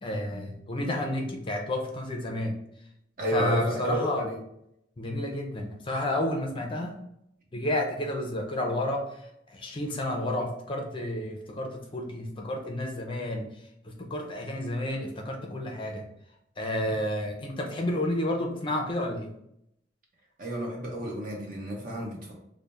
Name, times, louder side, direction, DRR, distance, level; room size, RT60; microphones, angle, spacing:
voice 1, 0.0-2.5 3.3-4.2 5.0-7.0 7.5-13.4 13.8-16.1 16.6-19.3, left 1 dB, 25° left, 1 dB, 0.5 m, -31 dB
voice 2, 3.2-4.4 20.4-22.4, right 1 dB, 50° right, -1 dB, 0.9 m, -31 dB
3.4 x 2.1 x 4.0 m, 0.77 s
head